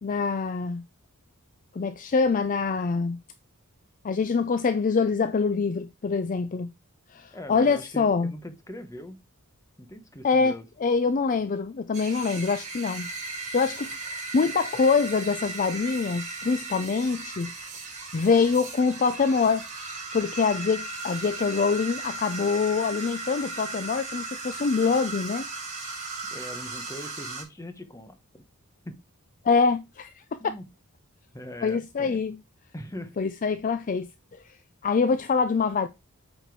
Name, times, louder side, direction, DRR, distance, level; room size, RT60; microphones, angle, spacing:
voice 1, 0.0-0.8 1.7-3.2 4.0-6.7 7.1-8.3 10.2-10.5 10.8-13.1 13.5-17.5 18.1-19.6 20.1-25.4 29.4-30.2 31.6-32.4 33.2-34.1 34.8-35.9, left 4 dB, 35° left, 0.4 m, -25 dB
voice 2, 7.1-9.2 9.8-10.6 26.3-28.4 28.8-29.0 30.4-30.7 31.3-32.2 32.7-33.1, left 1 dB, 15° left, 0.9 m, -41 dB
sound 1, 11.9-27.4, right 3 dB, 35° right, 3.8 m, -37 dB
8.0 x 4.4 x 4.6 m
head